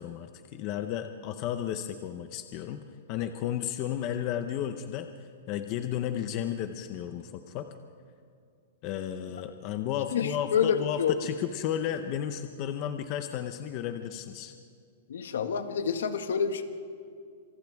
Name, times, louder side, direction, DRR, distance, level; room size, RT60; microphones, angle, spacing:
voice 1, 0.0-2.8 3.1-5.1 5.5-7.7 8.8-14.5, left 10 dB, 25° left, 8 dB, 0.7 m, -33 dB
voice 2, 10.1-11.1 15.1-16.6, left 7 dB, 80° left, 7 dB, 1.7 m, -28 dB
28.5 x 27.0 x 3.5 m, 2.4 s
hypercardioid pair, 180°, 0 cm